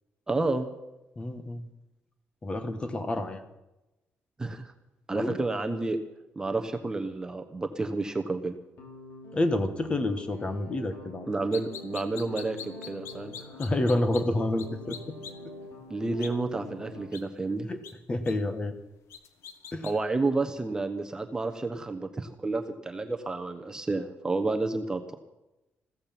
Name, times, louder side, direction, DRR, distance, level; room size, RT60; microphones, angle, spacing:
voice 1, 0.3-0.7 4.4-4.7 5.1-6.0 6.4-8.5 11.3-12.6 12.9-13.3 15.9-17.7 19.8-25.1, right 3 dB, 15° right, 6 dB, 1.1 m, -30 dB
voice 2, 1.2-1.6 2.4-3.4 5.1-5.4 9.3-11.3 13.5-15.1 15.4-15.5 17.7-17.8 18.1-18.7 19.7-19.9, left 1 dB, 25° left, 9 dB, 1.5 m, -29 dB
sound 1, 8.8-17.1, left 2 dB, 60° left, 4.9 m, -46 dB
sound 2, 11.5-14.2 14.6-14.7 14.9-15.3 16.2-16.3 17.1-17.2 17.8-17.9 18.3-18.4 19.1-19.9, left 8 dB, 80° left, 1.5 m, -41 dB
15.5 x 14.5 x 6.0 m, 0.95 s
cardioid pair, 140°, 5 cm